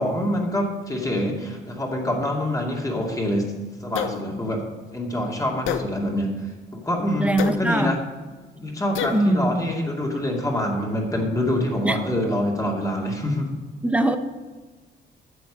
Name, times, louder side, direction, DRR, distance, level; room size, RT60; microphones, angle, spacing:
voice 1, 0.0-3.5 3.8-4.6 4.9-6.5 6.7-8.0 8.6-13.5, left 1 dB, 15° left, -1 dB, 2.4 m, -25 dB
sound 1, 3.9-4.2 5.6-5.9 7.4-7.6 8.9-9.2, left 8 dB, 85° left, 0.8 m, -27 dB
voice 2, 7.2-8.0 9.1-9.5 11.8-12.0 13.8-14.2, right 1 dB, 5° right, 8 dB, 0.9 m, -21 dB
10.5 x 7.0 x 5.0 m, 1.4 s
cardioid pair, 90°, 20 cm